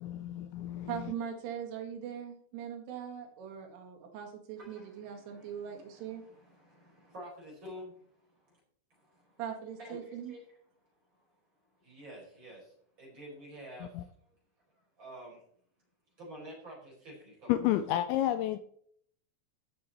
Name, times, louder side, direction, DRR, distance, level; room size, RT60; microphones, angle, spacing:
voice 1, 0.0-1.1 14.0-14.1 17.5-18.6, left 13 dB, 80° left, 2.7 m, -31 dB
voice 2, 0.9-6.2 9.4-10.3, right 8 dB, 80° right, 4.3 m, -41 dB
voice 3, 4.6-8.6 8.9-9.4 9.8-10.4 11.1-11.2 11.8-14.3 14.7-15.4 16.2-17.7, equal, 25° right, 4.9 m, -50 dB
16.0 x 6.9 x 4.1 m
omnidirectional pair, 5.6 m